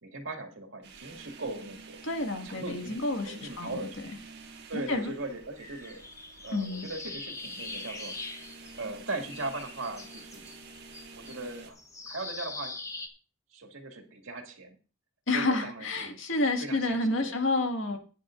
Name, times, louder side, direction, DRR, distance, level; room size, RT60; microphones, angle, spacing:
voice 1, 0.0-2.0 2.4-4.0 4.7-6.0 6.4-8.1 8.7-10.5 11.1-11.8 12.1-12.7 13.5-14.8 15.3-16.2 16.6-17.3, right 2 dB, 85° right, 3 dB, 2.1 m, -39 dB
sound 1, 0.8-11.7, right 4 dB, 60° right, 1.6 m, -49 dB
voice 2, 2.0-3.9 4.7-5.1 6.5-6.9 15.3-18.0, left 2 dB, 80° left, 4 dB, 1.8 m, -29 dB
sound 2, 5.6-9.0 9.2-13.1, left 3 dB, 15° left, 1.1 m, -42 dB
15.0 x 9.9 x 2.5 m, 0.36 s
head